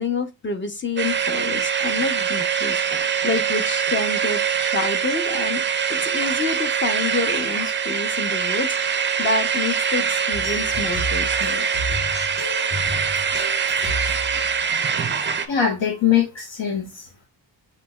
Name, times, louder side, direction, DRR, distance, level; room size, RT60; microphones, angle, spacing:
voice 1, 0.0-5.6 5.9-11.7, left 4 dB, 25° left, 0.6 m, -28 dB
sound 1, 1.0-15.5, right 7 dB, 25° right, 0.4 m, -23 dB
sound 2, 10.3-16.1, left 1 dB, 55° left, 2.7 m, -33 dB
voice 2, 15.5-17.1, left 8 dB, 75° left, 1.1 m, -22 dB
5.9 x 3.0 x 2.2 m
wide cardioid pair, 140°, 45 cm